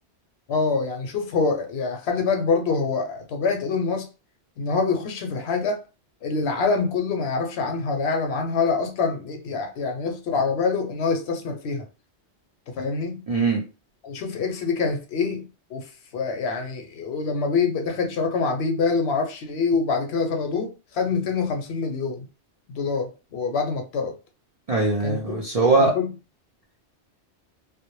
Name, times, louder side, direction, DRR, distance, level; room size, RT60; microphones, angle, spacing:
voice 1, 0.5-4.1 4.6-5.8 6.2-11.9 12.7-13.2 14.0-22.3 22.7-24.1 25.0-25.4 25.8-26.1, left 4 dB, 70° left, 0.8 m, -25 dB
voice 2, 13.3-13.6 24.7-25.9, right 3 dB, 60° right, 0.4 m, -21 dB
2.1 x 2.0 x 2.9 m
omnidirectional pair, 1.2 m